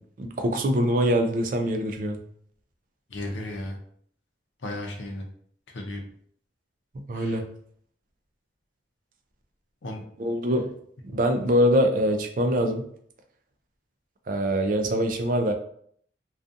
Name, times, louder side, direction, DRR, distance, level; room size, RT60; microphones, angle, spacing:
voice 1, 0.2-2.2 7.1-7.5 10.2-10.7 11.1-12.8 14.3-15.5, equal, 45° right, 5 dB, 0.3 m, -23 dB
voice 2, 3.1-3.8 4.6-5.2 5.7-6.0 7.1-7.4 9.8-10.0, left 1 dB, 85° left, 1 dB, 0.6 m, -34 dB
2.4 x 2.3 x 2.6 m, 0.63 s
head